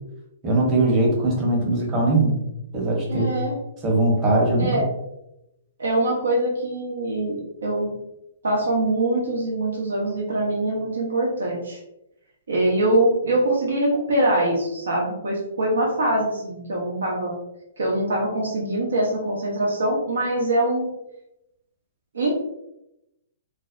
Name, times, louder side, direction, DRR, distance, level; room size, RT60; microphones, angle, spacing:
voice 1, 0.4-2.4 2.7-3.3 3.8-4.7, right 2 dB, 25° right, -2 dB, 0.8 m, -20 dB
voice 2, 3.1-3.6 4.6-4.8 5.8-8.0 8.4-11.8 12.5-17.3 17.8-20.9 22.1-22.3, right 1 dB, 80° right, -2 dB, 0.6 m, -23 dB
2.5 x 2.1 x 2.5 m, 0.85 s
hypercardioid pair, 125°, 0 cm